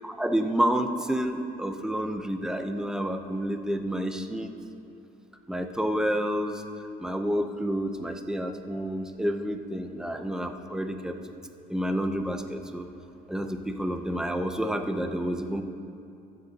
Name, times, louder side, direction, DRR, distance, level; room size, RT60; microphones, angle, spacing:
voice 1, 0.0-4.5 5.5-6.6 7.0-11.2 11.7-12.9 13.3-15.6, equal, 5° right, 6 dB, 0.7 m, -29 dB
23.0 x 7.8 x 2.9 m, 2.7 s
cardioid pair, 110°, 17 cm